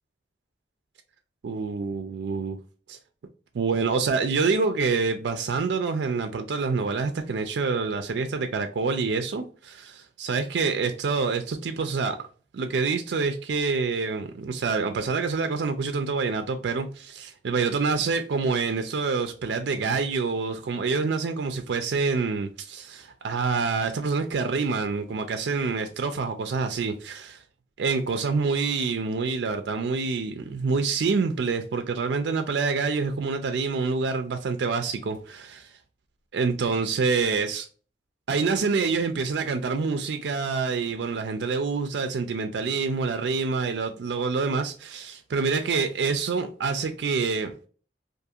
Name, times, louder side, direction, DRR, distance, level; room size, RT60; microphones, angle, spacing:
voice 1, 1.4-2.6 2.9-3.0 3.5-12.2 12.5-27.4 27.8-35.7 36.3-37.7 38.3-47.5, right 4 dB, 65° right, 0.4 m, -27 dB
2.5 x 2.4 x 2.7 m
head